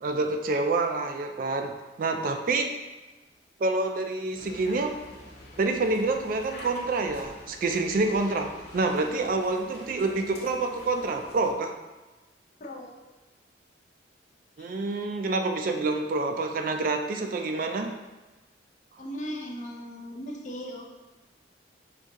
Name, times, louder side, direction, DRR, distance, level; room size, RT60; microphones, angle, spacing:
voice 1, 0.0-1.7 2.0-2.7 3.6-5.2 5.6-11.7 14.6-17.9, right 3 dB, 45° right, 5 dB, 0.3 m, -27 dB
sound 1, 4.3-11.5, left 1 dB, 55° left, 0.9 m, -47 dB
voice 2, 12.6-12.9 14.6-14.7 19.0-20.9, equal, 40° left, 0 dB, 0.6 m, -37 dB
5.1 x 2.7 x 3.5 m, 1.2 s
head